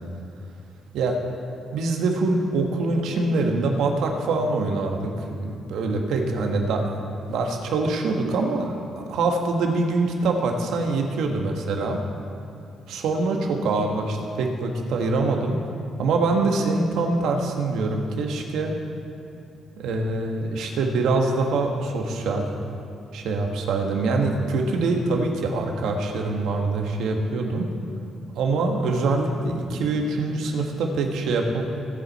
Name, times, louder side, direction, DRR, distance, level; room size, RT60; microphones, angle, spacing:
voice 1, 1.7-12.0 12.9-15.6 16.0-18.8 19.8-22.5 23.1-27.7 28.3-31.6, right 3 dB, 85° right, 2 dB, 1.5 m, -24 dB
20.0 x 7.5 x 4.2 m, 2.6 s
cardioid pair, 130°, 0 cm